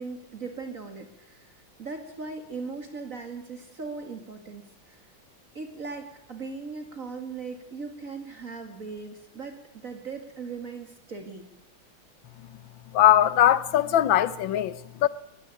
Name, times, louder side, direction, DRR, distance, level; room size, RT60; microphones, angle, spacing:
voice 1, 0.0-1.5 1.8-5.0 5.5-11.5, right 4 dB, 45° right, 2.5 m, -39 dB
voice 2, 12.9-15.1, left 11 dB, 80° left, 1.7 m, -21 dB
21.0 x 14.5 x 9.1 m
omnidirectional pair, 2.1 m